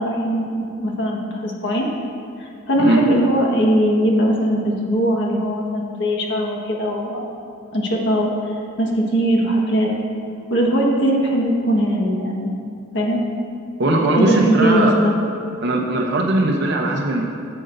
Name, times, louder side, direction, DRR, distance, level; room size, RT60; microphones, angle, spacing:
voice 1, 0.0-1.9 2.4-7.3 7.7-9.9 10.5-12.5 12.9-13.2 14.2-15.1, right 1 dB, 55° left, -1 dB, 1.5 m, -20 dB
voice 2, 13.8-14.9 15.6-17.3, right 1 dB, 55° right, 0 dB, 0.8 m, -19 dB
15.5 x 7.7 x 2.6 m, 2.5 s
head